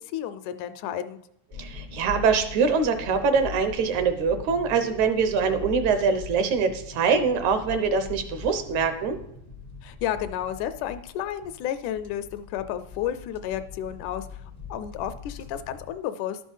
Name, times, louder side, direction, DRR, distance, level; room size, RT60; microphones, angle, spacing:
voice 1, 0.1-1.2 9.8-14.4 14.7-16.4, left 10 dB, 80° left, 11 dB, 2.0 m, -32 dB
sound 1, 1.5-15.9, left 6 dB, 40° left, 0.6 m, -42 dB
voice 2, 1.6-9.2, right 5 dB, 75° right, 9 dB, 2.1 m, -23 dB
11.5 x 6.2 x 5.4 m, 0.76 s
omnidirectional pair, 3.6 m